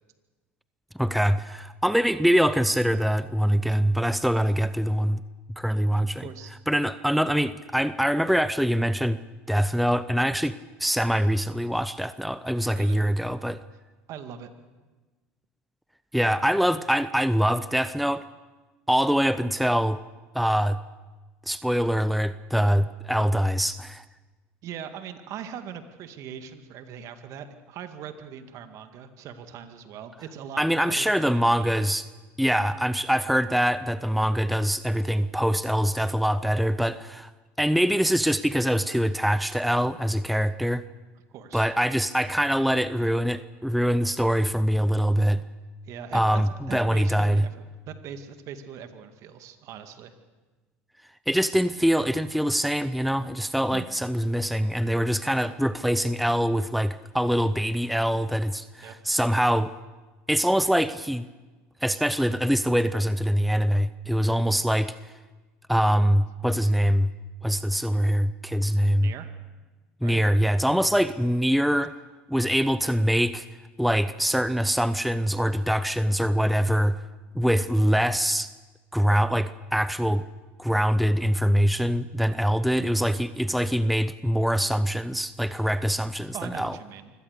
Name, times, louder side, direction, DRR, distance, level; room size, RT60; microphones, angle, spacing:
voice 1, 1.0-5.2 5.6-6.3 6.7-9.2 9.5-10.5 10.8-13.6 16.1-18.2 18.9-20.0 20.3-20.8 21.5-24.0 30.6-32.1 32.4-37.3 37.6-40.8 41.5-45.4 46.1-47.4 51.3-59.7 60.3-61.3 61.8-64.9 65.7-67.1 67.4-69.1 70.0-71.9 72.3-73.5 73.8-77.0 77.3-78.5 78.9-80.2 80.6-86.8, equal, ahead, 14 dB, 0.7 m, -24 dB
voice 2, 6.2-6.5 12.7-13.0 14.1-14.5 24.6-31.9 41.3-41.7 45.9-47.5 47.9-50.1 53.7-53.9 58.8-59.0 69.0-69.3 70.0-70.2 86.3-87.1, right 8 dB, 55° right, 8 dB, 2.1 m, -40 dB
24.5 x 17.5 x 6.7 m, 1.2 s
hypercardioid pair, 85°, 6 cm